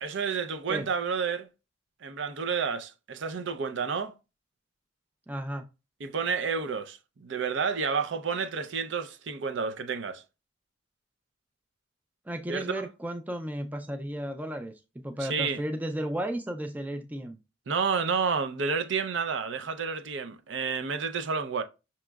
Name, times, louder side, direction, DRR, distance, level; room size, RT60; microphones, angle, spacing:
voice 1, 0.0-1.5 2.0-4.1 6.0-10.2 12.5-12.9 15.2-15.6 17.7-21.6, right 5 dB, 70° right, 0.5 m, -30 dB
voice 2, 5.3-5.6 12.3-17.4, right 1 dB, 10° right, 0.3 m, -34 dB
6.0 x 2.9 x 2.2 m
head